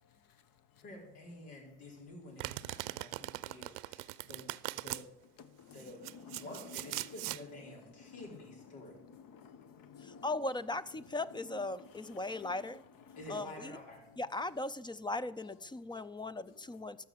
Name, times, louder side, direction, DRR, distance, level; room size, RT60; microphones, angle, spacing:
voice 1, 0.8-5.0 5.7-6.0 6.3-9.0 13.1-14.0, left 1 dB, 80° left, 4.2 m, -50 dB
Domestic sounds home sounds, 2.4-5.0 5.8-7.4, right 21 dB, 75° right, 0.6 m, -40 dB
voice 2, 5.4-6.5 8.1-8.3 8.7-10.2 13.1-13.2 15.9-16.0, left 6 dB, 50° left, 1.2 m, -54 dB
voice 3, 10.0-12.8 13.3-13.8 14.2-17.0, left 2 dB, 10° left, 0.4 m, -38 dB
13.0 x 5.9 x 7.9 m
supercardioid pair, 90°, 41 cm